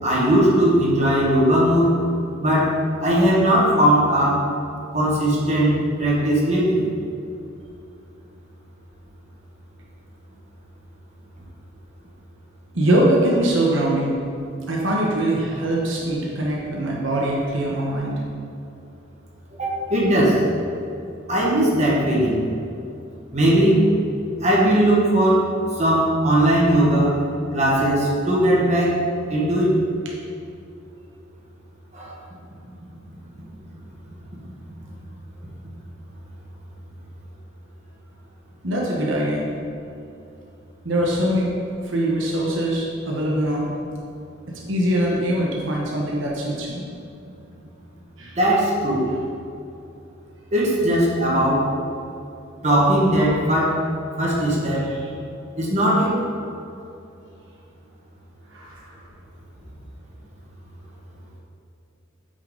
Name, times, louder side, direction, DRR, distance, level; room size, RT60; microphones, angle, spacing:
voice 1, 0.0-2.0 2.4-4.5 4.9-6.9 19.6-20.5 21.3-22.4 23.3-23.9 24.4-27.2 27.5-29.0 29.3-29.8 31.9-32.1 48.4-49.0 50.5-51.7 52.6-53.8 54.2-54.9 55.6-56.2, right 1 dB, 35° right, -5 dB, 1.5 m, -19 dB
voice 2, 12.7-14.2 14.7-18.2 19.8-19.9 38.6-39.5 40.8-41.6 41.8-43.7 44.7-46.8 48.2-48.4 58.5-58.9, right 1 dB, 70° right, -3 dB, 1.2 m, -22 dB
8.5 x 5.7 x 3.9 m, 2.6 s
head